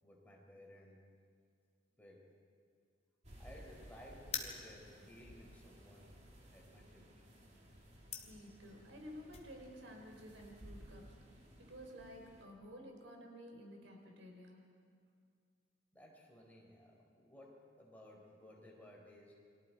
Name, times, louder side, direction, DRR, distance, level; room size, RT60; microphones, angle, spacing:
voice 1, 0.0-1.1 2.0-2.3 3.4-6.2 6.5-7.2 15.9-19.3, left 1 dB, 10° left, -2 dB, 4.0 m, -58 dB
sound 1, 3.2-12.4, equal, 35° right, 3.1 m, -58 dB
sound 2, 4.2-9.5, left 7 dB, 35° left, 2.3 m, -47 dB
voice 2, 8.2-11.1 11.6-14.7, equal, 80° right, 2 dB, 3.9 m, -53 dB
30.0 x 23.5 x 4.7 m, 2.2 s
head